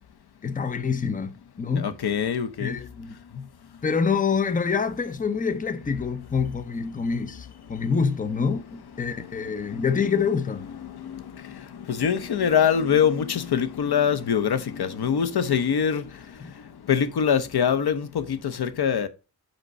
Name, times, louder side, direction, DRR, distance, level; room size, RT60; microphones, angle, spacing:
voice 1, 0.4-1.9 2.6-3.5 3.8-10.7 16.4-16.5, left 5 dB, 20° left, 0.5 m, -26 dB
voice 2, 1.7-2.8 10.8-16.0 16.9-19.1, left 7 dB, 70° left, 0.8 m, -24 dB
5.3 x 4.4 x 6.2 m
wide cardioid pair, 145°, 40 cm